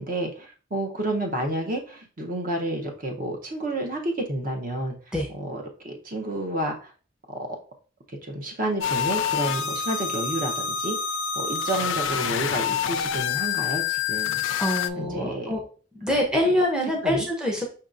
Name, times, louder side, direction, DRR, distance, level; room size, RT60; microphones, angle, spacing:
voice 1, 0.0-4.9 5.3-6.9 7.3-7.5 8.1-11.0 11.4-14.4 15.0-15.5 17.0-17.2, right 1 dB, 45° right, 2 dB, 0.8 m, -30 dB
sound 1, 8.8-14.9, left 7 dB, 75° left, 0.3 m, -27 dB
voice 2, 14.6-15.6 15.9-17.7, left 1 dB, 5° right, -1 dB, 0.6 m, -25 dB
5.4 x 2.8 x 2.5 m, 0.38 s
head